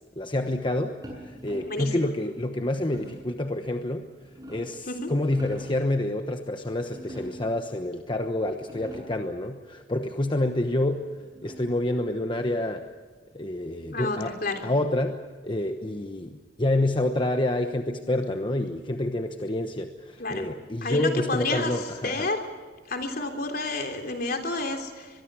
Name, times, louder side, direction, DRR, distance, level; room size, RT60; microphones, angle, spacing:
voice 1, 0.2-4.1 4.5-11.0 11.4-12.8 13.3-14.3 14.6-22.3, left 1 dB, 30° left, 6 dB, 1.1 m, -28 dB
sound 1, 1.0-1.9 2.9-3.4 4.0-4.8 5.2-5.8 6.9-7.6 8.2-8.3 8.5-9.3 10.7-11.8, equal, 20° right, 7.6 m, -44 dB
voice 2, 1.7-2.0 4.9-5.1 13.9-14.7 20.2-20.4 20.8-21.7 22.0-22.4 22.9-25.1, left 2 dB, 55° left, 4 dB, 3.4 m, -30 dB
23.5 x 23.0 x 6.2 m, 1.5 s
head